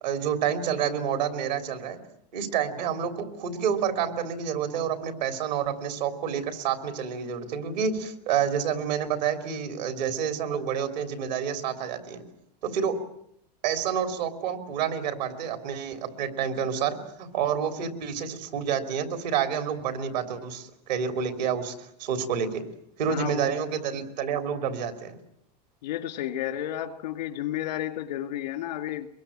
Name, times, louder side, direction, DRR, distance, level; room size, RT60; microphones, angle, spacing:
voice 1, 0.0-2.0 2.3-12.2 12.6-13.0 13.6-22.7 23.0-25.2, right 8 dB, 90° right, 8 dB, 3.5 m, -29 dB
voice 2, 25.8-29.1, left 12 dB, 90° left, 10 dB, 2.3 m, -32 dB
23.5 x 22.0 x 8.9 m, 0.74 s
supercardioid pair, 125°, 21 cm